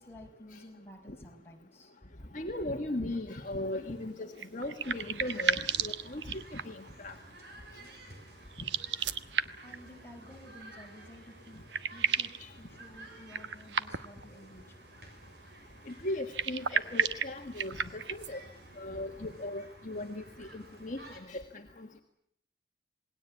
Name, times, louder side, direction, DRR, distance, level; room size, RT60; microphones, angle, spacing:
voice 1, 0.0-1.9 9.2-9.4 9.6-11.6 11.9-14.8, left 1 dB, 15° left, 0 dB, 5.2 m, -52 dB
voice 2, 2.3-7.1 12.4-12.5 15.9-18.4 18.8-22.0, left 1 dB, 45° left, 3 dB, 1.7 m, -38 dB
sound 1, 4.4-6.9 8.5-9.8 11.1-11.2 11.5-12.4 13.3-14.2 16.2-18.3, right 7 dB, 85° right, 1.1 m, -33 dB
sound 2, 4.8-21.2, right 1 dB, 65° right, 6.7 m, -53 dB
27.5 x 19.5 x 8.5 m, 0.71 s
head